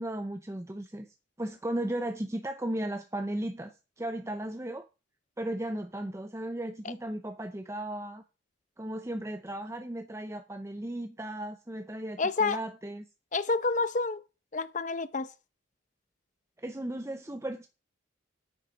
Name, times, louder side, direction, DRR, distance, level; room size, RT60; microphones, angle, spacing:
voice 1, 0.0-4.8 5.4-8.2 8.8-13.0 16.6-17.7, right 1 dB, 15° right, 0.6 m, -36 dB
voice 2, 12.2-12.6 13.3-14.2 14.5-15.3, left 3 dB, 40° left, 0.7 m, -28 dB
9.2 x 7.4 x 5.9 m
head